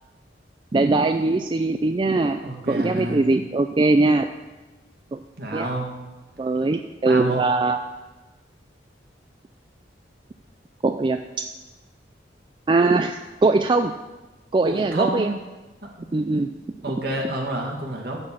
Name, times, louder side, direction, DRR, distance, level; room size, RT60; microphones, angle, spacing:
voice 1, 0.7-2.4 2.7-4.3 5.1-5.2 5.5-5.7 6.4-7.8 10.8-11.2 12.7-13.9 14.5-15.4 16.1-16.5, right 3 dB, 25° right, 7 dB, 0.4 m, -21 dB
voice 2, 2.4-3.2 5.4-5.9 7.1-7.5 14.6-15.3 16.8-18.2, right 1 dB, 60° right, 1 dB, 2.0 m, -28 dB
13.0 x 4.3 x 7.3 m, 1.2 s
head